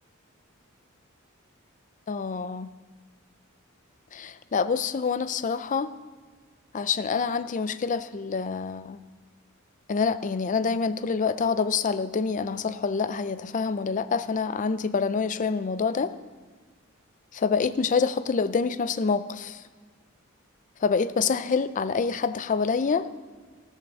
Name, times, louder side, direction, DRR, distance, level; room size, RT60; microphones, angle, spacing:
voice 1, 2.1-2.7 4.1-5.9 6.7-9.0 9.9-16.1 17.3-19.6 20.8-23.1, left 5 dB, 35° left, 14 dB, 0.4 m, -26 dB
14.5 x 6.4 x 6.7 m, 1.5 s
head